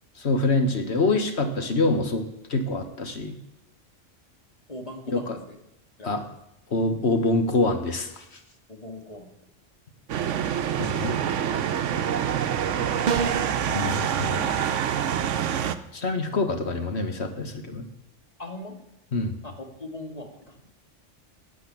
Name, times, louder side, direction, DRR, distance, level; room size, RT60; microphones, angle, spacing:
voice 1, 0.2-3.4 5.1-5.4 6.0-6.2 6.7-8.4 10.8-11.2 13.7-14.5 15.9-17.8 19.1-19.3, left 2 dB, 60° left, 7 dB, 1.7 m, -25 dB
voice 2, 4.7-5.6 6.0-6.3 8.7-9.3 18.4-18.8 19.4-20.6, left 1 dB, 30° left, 4 dB, 2.3 m, -40 dB
sound 1, 10.1-15.8, right 9 dB, 80° right, 1.1 m, -26 dB
sound 2, 13.1-13.6, right 5 dB, 45° right, 0.7 m, -26 dB
12.0 x 8.2 x 8.6 m, 0.92 s
omnidirectional pair, 1.2 m